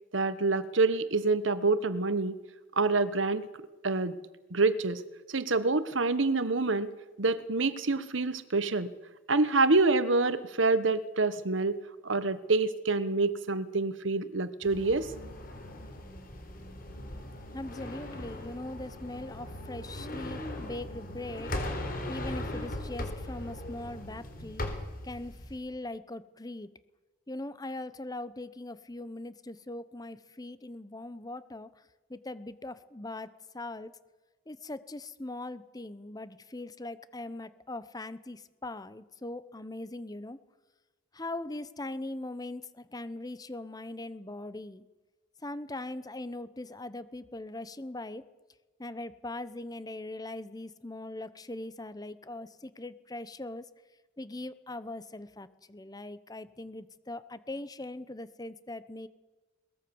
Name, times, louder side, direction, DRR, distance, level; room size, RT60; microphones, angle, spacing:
voice 1, 0.1-2.4 2.8-3.5 3.8-4.2 4.5-5.0 5.3-6.9 7.2-8.9 9.3-15.1, right 3 dB, 85° right, 14 dB, 1.2 m, -27 dB
sound 1, 14.6-25.6, left 1 dB, 50° left, 4.0 m, -39 dB
voice 2, 17.5-21.6 22.1-24.6 25.0-26.7 27.3-31.7 32.1-33.9 34.5-40.4 41.1-44.9 45.4-48.2 48.8-53.7 54.2-59.1, left 2 dB, 20° left, 15 dB, 0.9 m, -40 dB
22.0 x 19.5 x 7.1 m, 1.2 s
head